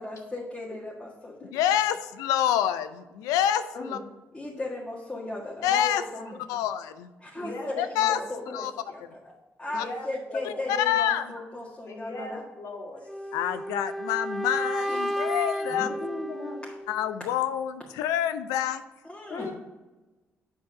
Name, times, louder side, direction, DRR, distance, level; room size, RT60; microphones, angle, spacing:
voice 1, 0.0-1.7 4.3-5.7 6.3-6.6 7.2-8.6 8.9-9.3 9.6-12.4 14.9-15.3 16.6-16.7 17.2-17.3 19.0-19.5, left 2 dB, 15° left, -4 dB, 1.8 m, -37 dB
voice 2, 1.5-3.6 3.9-4.0 5.6-6.0 6.5-7.1 7.8-8.2 8.5-8.7 9.7-9.8 10.7-11.3 13.3-15.9 16.9-18.8, left 10 dB, 85° left, 12 dB, 0.5 m, -27 dB
voice 3, 5.7-6.4 7.4-8.1 8.5-8.7 9.7-10.7 11.9-13.1 15.7-16.6 19.3-19.5, left 2 dB, 60° left, 0 dB, 1.9 m, -37 dB
sound 1, 13.1-17.1, equal, ahead, 0.4 m, -32 dB
7.7 x 4.6 x 5.5 m, 1.1 s
supercardioid pair, 55°, 6 cm